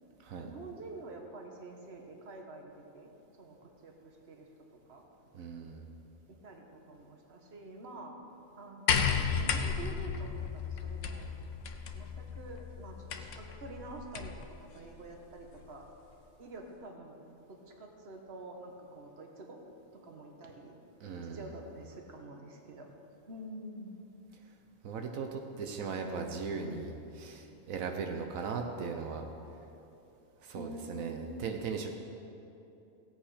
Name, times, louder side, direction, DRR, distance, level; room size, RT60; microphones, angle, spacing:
voice 1, 0.4-5.0 6.3-8.1 8.6-9.0 9.3-11.3 11.9-15.9 16.4-17.2 17.5-19.6 19.9-20.7 21.3-22.9 23.3-24.0 30.5-31.4, right 2 dB, 50° right, 2 dB, 1.5 m, -47 dB
voice 2, 5.3-5.8 21.0-21.5 24.8-29.2 30.4-31.9, right 5 dB, 90° right, 4 dB, 1.3 m, -38 dB
sound 1, 8.9-14.5 15.6-15.7, left 6 dB, 70° left, 1.1 m, -34 dB
16.5 x 8.6 x 4.9 m, 2.9 s
omnidirectional pair, 1.4 m